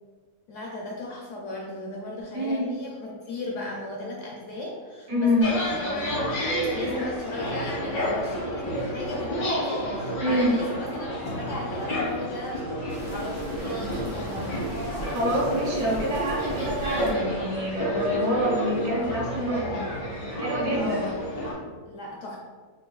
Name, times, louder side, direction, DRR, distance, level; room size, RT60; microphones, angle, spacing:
voice 1, 0.5-6.4 6.7-12.6 13.1-15.0 20.7-21.2 21.9-22.4, left 2 dB, 65° left, -2 dB, 0.8 m, -36 dB
voice 2, 2.3-2.7 5.1-5.4 10.2-10.5 15.1-19.8 20.4-21.0, equal, 50° right, -5 dB, 1.3 m, -26 dB
sound 1, 5.4-21.5, equal, 90° left, 1.8 m, -30 dB
sound 2, 12.9-17.1, right 2 dB, 75° right, 1.3 m, -37 dB
5.4 x 2.2 x 2.3 m, 1.5 s
omnidirectional pair, 1.6 m